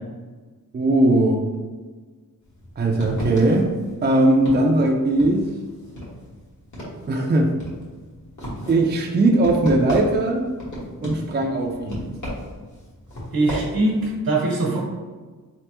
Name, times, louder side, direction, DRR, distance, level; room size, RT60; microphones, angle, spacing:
voice 1, 0.7-1.5 2.8-3.7 4.0-5.5 7.1-7.5 8.7-10.4 11.0-12.0, right 2 dB, 30° right, 1 dB, 0.4 m, -19 dB
sound 1, 2.4-14.2, equal, 55° left, 1.4 m, -36 dB
voice 2, 13.3-14.8, right 2 dB, 85° right, -3 dB, 1.0 m, -22 dB
4.2 x 3.3 x 3.0 m, 1.4 s
wide cardioid pair, 135°, 35 cm